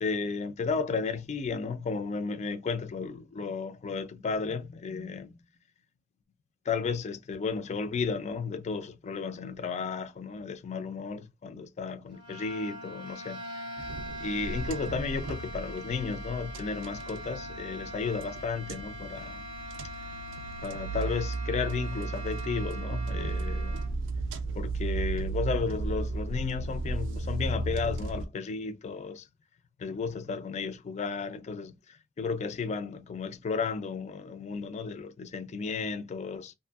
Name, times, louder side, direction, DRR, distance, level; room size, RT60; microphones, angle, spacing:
voice 1, 0.0-5.4 6.7-13.6 14.2-19.4 20.6-23.8 24.5-29.3 29.8-36.5, left 5 dB, 30° left, 0.3 m, -33 dB
sound 1, 12.1-23.9, right 1 dB, 20° right, 0.6 m, -42 dB
sound 2, 13.8-28.3, right 3 dB, 65° right, 0.4 m, -35 dB
2.5 x 2.5 x 2.3 m
head